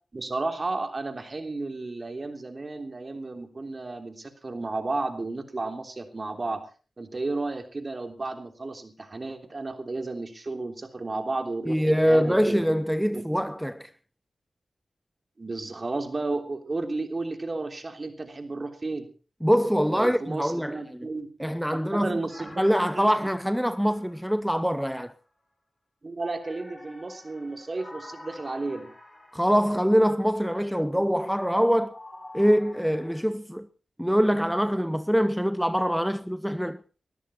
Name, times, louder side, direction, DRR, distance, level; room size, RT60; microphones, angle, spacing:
voice 1, 0.1-6.6 7.0-12.6 13.1-13.2 15.4-19.1 19.9-21.3 21.7-22.6 22.9-23.1 26.0-28.9, right 3 dB, 45° right, 3.3 m, -33 dB
voice 2, 11.7-13.9 19.4-21.1 21.4-22.2 22.6-25.1 29.3-31.9 32.3-33.7 34.0-36.8, equal, ahead, 0.8 m, -24 dB
sound 1, 22.3-25.1 26.4-30.2 31.9-33.2, left 1 dB, 25° left, 7.8 m, -48 dB
20.0 x 13.5 x 4.3 m
cardioid pair, 45°, 0 cm